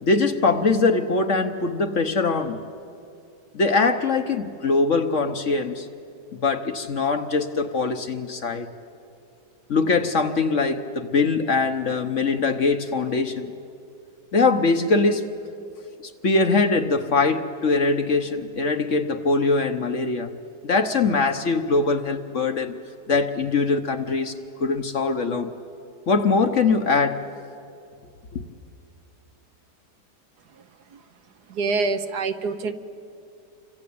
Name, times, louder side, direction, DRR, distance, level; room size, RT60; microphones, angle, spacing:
voice 1, 0.0-2.6 3.5-5.9 6.4-8.7 9.7-13.5 14.3-15.3 16.2-20.3 20.6-22.7 23.1-24.3 24.6-25.5 26.1-27.2 28.3-28.4, left 3 dB, 50° left, 7 dB, 1.2 m, -22 dB
voice 2, 31.5-32.7, right 4 dB, 65° right, 9 dB, 1.6 m, -25 dB
28.5 x 24.5 x 8.6 m, 2.6 s
omnidirectional pair, 1.9 m